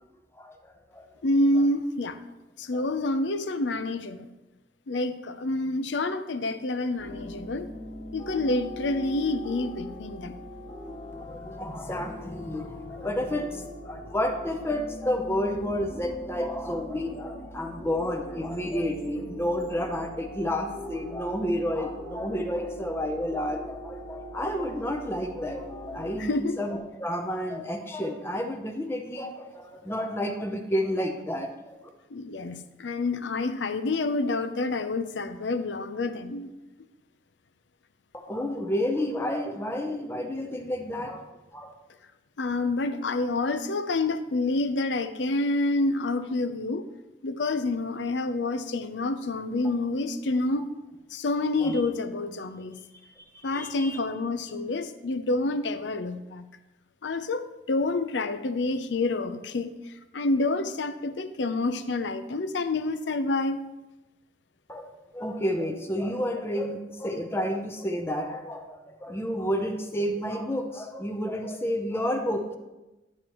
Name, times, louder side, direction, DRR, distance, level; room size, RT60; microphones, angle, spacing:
voice 1, 0.4-1.1 2.7-2.8 11.1-31.8 38.1-41.3 41.5-41.7 51.6-51.8 53.2-54.0 64.7-72.6, equal, 15° left, 4 dB, 0.6 m, -31 dB
voice 2, 1.2-2.2 2.6-4.3 4.9-7.7 8.1-10.3 26.2-26.6 32.1-36.5 42.4-46.8 47.2-50.7 51.1-52.8 53.4-56.4 57.0-59.7 60.1-63.7, left 2 dB, 80° left, 11 dB, 0.6 m, -28 dB
sound 1, 7.0-26.3, left 1 dB, 35° left, 1.5 m, -41 dB
11.0 x 7.7 x 3.1 m, 1.0 s
head